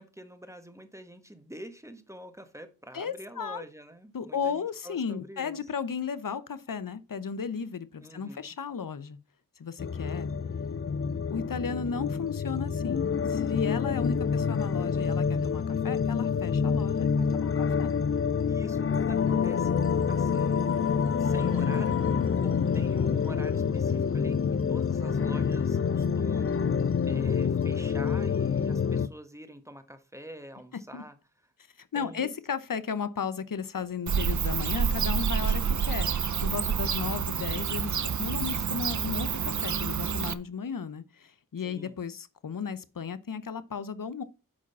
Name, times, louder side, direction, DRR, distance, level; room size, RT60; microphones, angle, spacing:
voice 1, 0.0-5.6 8.0-8.5 18.5-20.9 21.2-22.1 22.4-31.2 31.4-31.5 31.9-32.4 41.6-41.9, equal, 10° right, 1.5 m, -46 dB
voice 2, 2.9-3.6 4.1-9.2 9.6-10.3 11.3-17.9 27.4-27.5 30.9-31.0 31.8-44.2, left 6 dB, 65° left, 0.8 m, -35 dB
sound 1, 9.8-29.1, left 6 dB, 40° left, 0.5 m, -27 dB
Bird / Cricket, 34.1-40.3, right 7 dB, 55° right, 0.6 m, -28 dB
8.3 x 5.1 x 5.6 m
cardioid pair, 45°, 35 cm